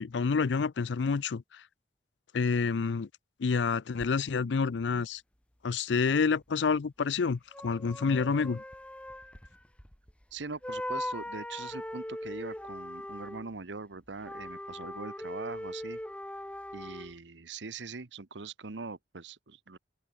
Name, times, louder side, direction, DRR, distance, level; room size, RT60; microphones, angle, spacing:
voice 1, 0.0-1.4 2.3-3.1 3.4-5.2 5.6-8.6, left 5 dB, 80° left, 0.5 m, -28 dB
sound 1, 4.0-4.1 7.5-10.3 10.6-13.5 14.1-17.1, left 1 dB, 5° left, 1.4 m, -40 dB
voice 2, 10.3-16.0 16.7-19.8, right 4 dB, 85° right, 1.1 m, -42 dB
open air
head